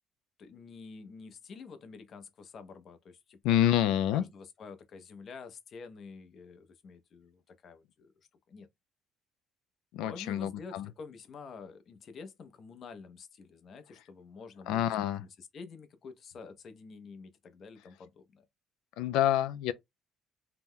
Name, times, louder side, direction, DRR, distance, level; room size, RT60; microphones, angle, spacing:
voice 1, 0.4-3.6 4.1-8.1 8.5-8.7 10.0-14.9 15.2-18.4, left 4 dB, 40° left, 0.5 m, -48 dB
voice 2, 3.4-4.2 9.9-10.9 14.7-15.2 19.0-19.7, left 11 dB, 90° left, 0.3 m, -27 dB
2.8 x 2.1 x 3.6 m
cardioid pair, 155°, 0 cm